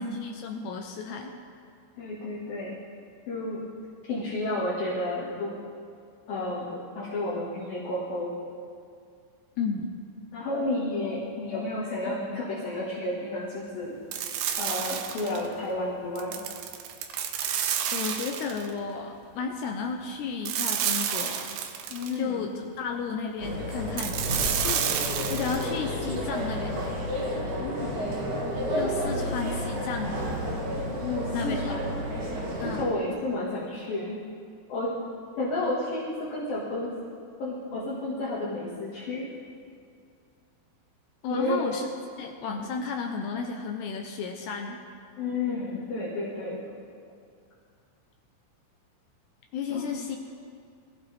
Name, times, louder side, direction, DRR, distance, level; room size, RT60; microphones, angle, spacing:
voice 1, 0.0-1.3 9.6-9.9 17.9-21.5 22.2-24.2 24.6-24.9 25.3-26.8 28.7-30.2 31.3-31.7 32.6-32.9 41.2-41.9 42.2-44.8 49.5-50.2, left 5 dB, 75° left, 2 dB, 2.5 m, -33 dB
voice 2, 2.0-2.8 3.3-3.6 4.0-5.5 6.3-8.3 10.3-14.0 14.6-16.4 21.9-22.5 27.6-28.1 31.0-31.8 32.6-34.2 34.7-34.9 35.4-36.9 37.4-39.3 41.3-41.6 45.2-46.6 49.7-49.9, left 2 dB, 55° left, -8 dB, 3.2 m, -31 dB
sound 1, 14.1-15.5 16.2-18.7 20.4-22.2 24.0-25.7, right 9 dB, 85° right, 2.3 m, -30 dB
sound 2, 23.4-32.8, equal, 50° right, 3.0 m, -31 dB
23.5 x 15.0 x 3.5 m, 2.3 s
omnidirectional pair, 5.6 m